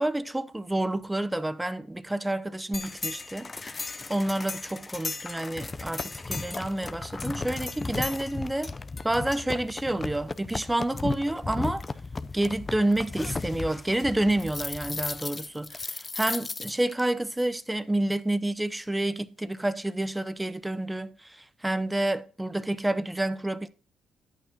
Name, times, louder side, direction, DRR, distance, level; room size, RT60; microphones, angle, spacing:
voice 1, 0.0-8.7 9.0-11.8 12.3-23.7, right 1 dB, 10° right, 0.7 m, -29 dB
sound 1, 2.7-17.0, left 3 dB, 25° left, 0.6 m, -35 dB
11.0 x 8.7 x 2.9 m
cardioid pair, 90°, 0 cm